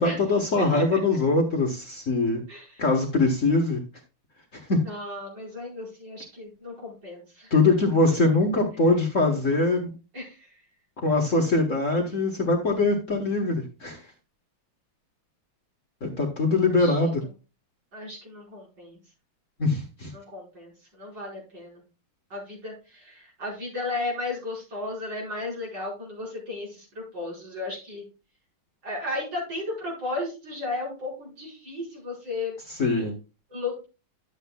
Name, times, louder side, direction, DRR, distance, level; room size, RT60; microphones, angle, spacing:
voice 1, 0.0-2.4 2.8-3.8 4.5-4.8 7.5-9.9 11.0-14.0 16.0-17.2 19.6-20.1 32.8-33.1, left 3 dB, 40° left, 1 dB, 1.5 m, -22 dB
voice 2, 0.6-1.0 2.5-2.8 4.8-7.5 10.1-10.5 16.7-17.0 17.9-19.0 20.1-21.8 22.3-28.0 28.8-32.6 33.5-33.9, left 2 dB, 55° right, -3 dB, 5.6 m, -34 dB
12.0 x 8.1 x 2.3 m, 0.31 s
omnidirectional pair, 2.3 m